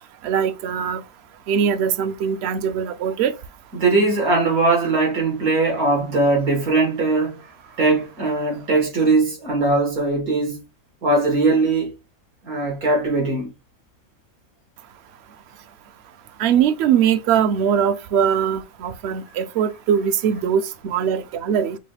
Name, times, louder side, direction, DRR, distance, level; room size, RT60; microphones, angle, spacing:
voice 1, 0.2-1.0 1.5-3.3 16.4-21.8, right 8 dB, 65° right, 0.7 m, -21 dB
voice 2, 3.7-7.4 7.8-10.6 11.0-11.9 12.4-13.5, right 3 dB, 90° right, 2.4 m, -20 dB
5.4 x 2.3 x 3.3 m
omnidirectional pair, 1.5 m